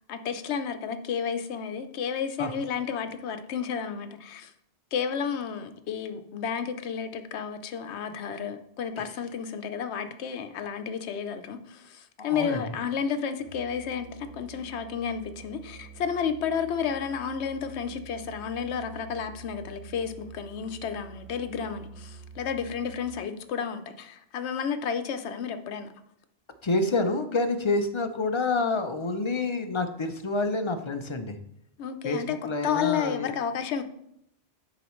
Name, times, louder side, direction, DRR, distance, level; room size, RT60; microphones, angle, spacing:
voice 1, 0.1-4.5 4.9-25.9 31.8-32.4 32.6-33.8, left 7 dB, 85° left, 0.9 m, -32 dB
voice 2, 12.2-12.6 26.6-31.4 32.0-33.3, left 3 dB, 35° left, 0.5 m, -28 dB
Musical instrument, 13.4-23.3, right 6 dB, 10° right, 2.0 m, -47 dB
10.0 x 4.9 x 3.1 m
omnidirectional pair, 1.1 m